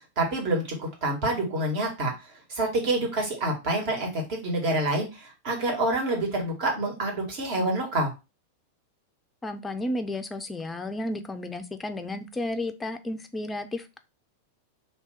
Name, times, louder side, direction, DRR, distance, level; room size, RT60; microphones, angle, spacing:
voice 1, 0.2-2.1 2.5-8.1, right 2 dB, 45° right, 0 dB, 1.5 m, -27 dB
voice 2, 9.4-14.0, left 1 dB, 10° left, 8 dB, 0.5 m, -32 dB
2.9 x 2.7 x 3.4 m, 0.26 s
figure-of-eight pair, 90°, 0 cm